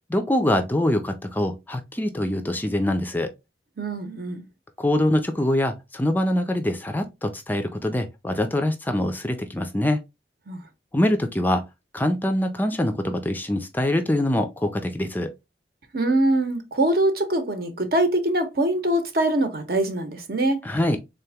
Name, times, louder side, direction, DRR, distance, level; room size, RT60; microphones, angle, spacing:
voice 1, 0.1-3.3 4.8-10.0 10.9-11.6 11.9-15.3 20.6-21.0, left 1 dB, 10° left, 0.4 m, -24 dB
voice 2, 3.8-4.5 10.5-10.6 15.9-20.6, right 1 dB, 55° right, 0.9 m, -23 dB
3.6 x 2.8 x 3.4 m
head